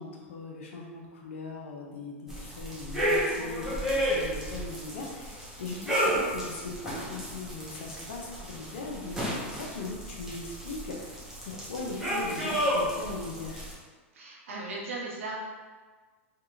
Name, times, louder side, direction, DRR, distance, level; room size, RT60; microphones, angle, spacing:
voice 1, 0.0-13.7, left 3 dB, 80° left, 0 dB, 0.6 m, -39 dB
sound 1, 2.3-13.7, equal, 5° right, 0.7 m, -32 dB
voice 2, 14.1-15.4, right 3 dB, 85° right, -3 dB, 0.7 m, -37 dB
2.9 x 2.7 x 2.5 m, 1.4 s
hypercardioid pair, 105°, 7 cm